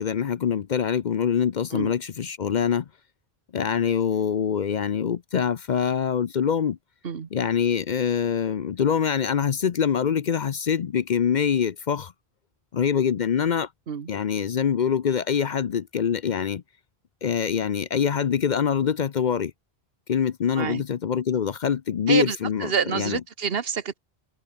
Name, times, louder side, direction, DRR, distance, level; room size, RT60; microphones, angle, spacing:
voice 1, 0.0-2.9 3.5-6.8 7.3-12.1 12.7-13.7 14.1-16.6 17.2-19.5 20.1-23.2, left 7 dB, 50° left, 0.7 m, -24 dB
voice 2, 22.1-24.0, right 6 dB, 70° right, 1.3 m, -27 dB
omnidirectional pair, 1.0 m